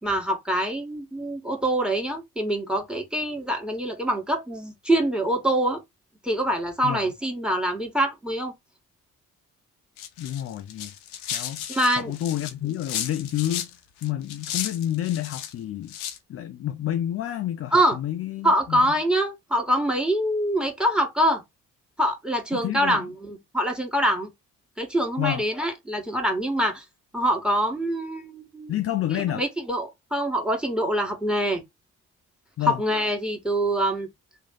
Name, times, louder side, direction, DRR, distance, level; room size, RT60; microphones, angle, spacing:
voice 1, 0.0-5.8 6.2-8.5 11.7-12.1 17.7-18.0 18.4-21.4 22.0-24.3 24.8-26.8 27.1-28.7 29.1-31.6 32.7-34.1, right 1 dB, ahead, 1.6 m, -25 dB
sound 1, 10.0-13.7 14.0-15.5 15.9-16.2, left 10 dB, 80° left, 0.7 m, -34 dB
voice 2, 10.2-10.9 11.3-11.7 12.0-13.7 14.0-16.0 16.3-18.9 22.5-23.0 25.2-25.4 28.7-29.4 32.6-32.8, left 12 dB, 35° left, 0.4 m, -29 dB
3.1 x 2.7 x 3.8 m
figure-of-eight pair, 45°, 42 cm